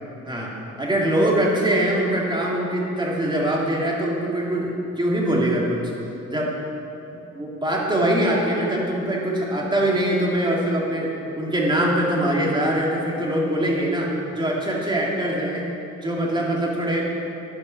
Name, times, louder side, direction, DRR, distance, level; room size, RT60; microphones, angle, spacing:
voice 1, 0.3-5.8 6.3-6.5 7.3-11.1 11.3-15.7 16.0-17.1, right 1 dB, 15° right, -3 dB, 2.1 m, -23 dB
12.0 x 5.3 x 5.6 m, 2.9 s
cardioid pair, 90°, 30 cm